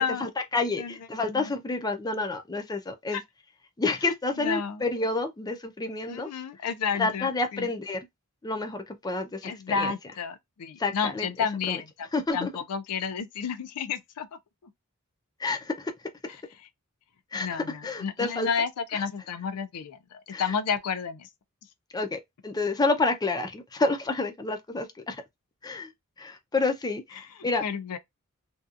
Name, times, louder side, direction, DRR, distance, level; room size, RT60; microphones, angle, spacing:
voice 1, 0.2-3.2 3.8-6.3 7.0-8.1 8.4-9.9 10.8-11.3 11.7-11.8 12.1-12.5 15.4-15.9 17.3-18.5 20.3-20.4 21.9-25.2 25.6-25.9 26.2-27.6, left 3 dB, 15° left, 0.4 m, -29 dB
voice 2, 0.8-1.5 3.1-3.2 4.4-4.8 6.1-7.7 9.4-14.7 17.3-21.3 27.2-27.3 27.6-28.0, left 6 dB, 90° left, 0.4 m, -31 dB
2.7 x 2.3 x 2.4 m
head